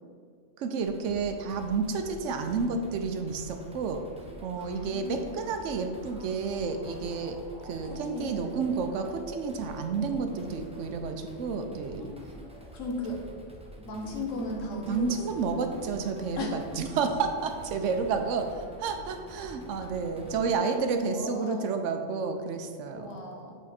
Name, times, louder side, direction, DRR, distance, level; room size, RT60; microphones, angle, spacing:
voice 1, 0.6-4.0 4.4-7.4 7.6-12.1 14.9-23.2, right 5 dB, 75° right, 6 dB, 0.9 m, -30 dB
sound 1, 0.8-20.4, right 1 dB, 10° right, 0.4 m, -46 dB
voice 2, 4.6-5.5 7.8-8.6 10.3-10.6 12.0-12.2 12.7-13.2 13.9-15.5 16.4-16.6 19.8-19.9 20.2-20.3 21.0-21.7 22.9-23.6, left 2 dB, 85° left, 1 dB, 1.4 m, -37 dB
8.0 x 3.7 x 4.2 m, 2.1 s
omnidirectional pair, 1.3 m